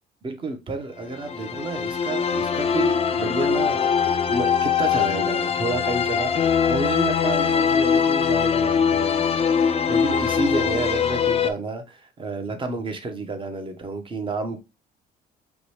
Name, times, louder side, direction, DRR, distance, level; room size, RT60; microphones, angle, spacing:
voice 1, 0.2-14.6, right 3 dB, 30° right, 1.2 m, -30 dB
sound 1, 1.1-11.5, left 7 dB, 35° left, 0.6 m, -22 dB
5.1 x 3.1 x 3.3 m
cardioid pair, 110°, 17 cm